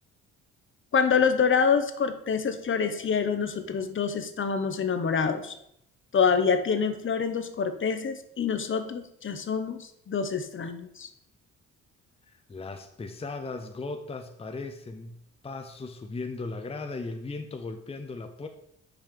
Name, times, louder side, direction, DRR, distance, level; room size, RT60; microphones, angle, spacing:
voice 1, 0.9-5.5 6.1-11.1, left 6 dB, 40° left, 9 dB, 1.0 m, -26 dB
voice 2, 12.3-15.2 15.4-18.5, left 3 dB, 20° left, 5 dB, 0.7 m, -37 dB
6.0 x 5.1 x 6.7 m, 0.75 s
cardioid pair, 90°, 30 cm